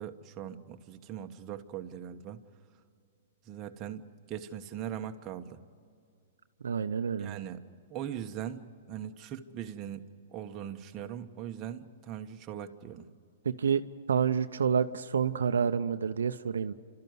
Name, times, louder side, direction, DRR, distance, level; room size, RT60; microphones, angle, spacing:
voice 1, 0.0-2.4 3.5-5.6 7.2-7.6 7.9-13.1, right 9 dB, 30° right, 5 dB, 1.2 m, -40 dB
voice 2, 6.6-7.4 13.4-13.8 14.1-16.7, right 7 dB, 85° right, 9 dB, 0.7 m, -28 dB
29.5 x 13.5 x 9.5 m, 2.4 s
hypercardioid pair, 130°, 0 cm